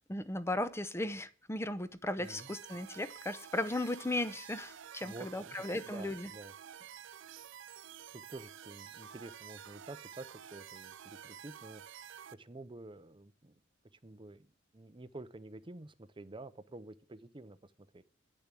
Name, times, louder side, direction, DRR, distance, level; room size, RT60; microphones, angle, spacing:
voice 1, 0.1-6.3, left 1 dB, 15° left, 0.8 m, -36 dB
voice 2, 2.2-2.5 5.0-6.5 8.1-11.8 12.3-13.6 14.0-18.0, right 2 dB, 25° right, 0.7 m, -50 dB
sound 1, 2.2-12.3, right 9 dB, 65° right, 0.5 m, -50 dB
10.5 x 7.0 x 7.6 m
head